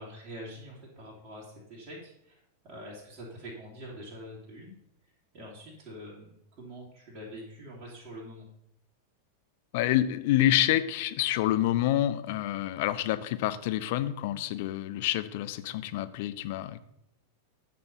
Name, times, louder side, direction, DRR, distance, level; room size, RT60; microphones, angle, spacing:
voice 1, 0.0-4.7 5.3-8.4, equal, 35° right, -6 dB, 2.6 m, -45 dB
voice 2, 9.7-16.8, left 13 dB, 50° left, 11 dB, 0.6 m, -27 dB
9.6 x 4.4 x 5.6 m, 0.76 s
figure-of-eight pair, 90°, 0 cm